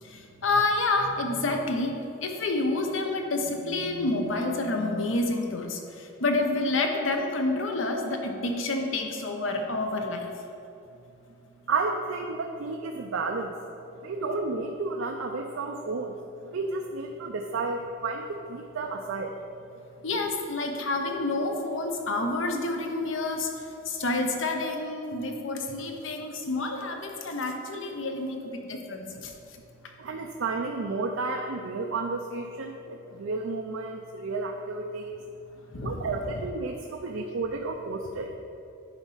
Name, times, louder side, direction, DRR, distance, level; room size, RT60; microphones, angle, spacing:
voice 1, 0.0-10.3 20.0-29.3 35.7-36.0, left 2 dB, 70° left, 3 dB, 1.0 m, -29 dB
voice 2, 11.7-13.6 14.0-19.3 30.0-35.2 35.8-38.4, right 3 dB, 80° right, 2 dB, 0.5 m, -32 dB
10.5 x 4.2 x 5.6 m, 2.7 s
head